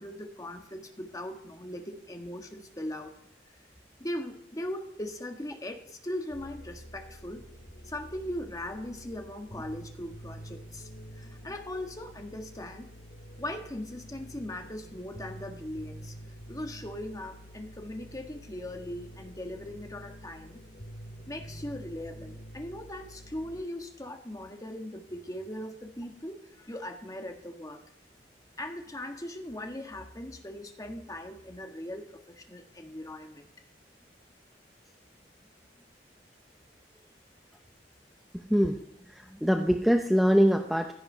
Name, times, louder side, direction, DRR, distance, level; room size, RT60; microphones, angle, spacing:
voice 1, 0.0-3.1 4.0-7.4 7.8-10.9 11.1-12.9 13.4-16.1 16.5-20.6 21.3-27.8 28.6-33.5, left 1 dB, 20° left, 4 dB, 1.6 m, -39 dB
sound 1, 6.3-23.6, equal, 60° left, 2.5 m, -47 dB
voice 2, 38.3-38.8 39.1-40.9, equal, ahead, 4 dB, 0.7 m, -24 dB
16.0 x 12.5 x 5.6 m, 0.71 s
head